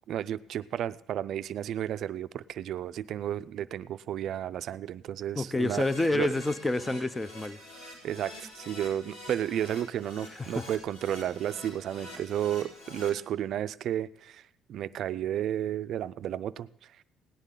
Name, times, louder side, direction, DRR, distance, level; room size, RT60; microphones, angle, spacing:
voice 1, 0.1-5.8 6.1-6.3 8.0-14.4 14.7-16.7, right 11 dB, 55° right, 14 dB, 0.4 m, -32 dB
voice 2, 5.4-7.6 10.3-10.6, left 2 dB, 10° left, 15 dB, 0.5 m, -28 dB
Keyboard (musical), 5.6-13.1, left 1 dB, 85° left, 4.7 m, -46 dB
18.0 x 9.9 x 3.7 m, 0.73 s
cardioid pair, 140°, 0 cm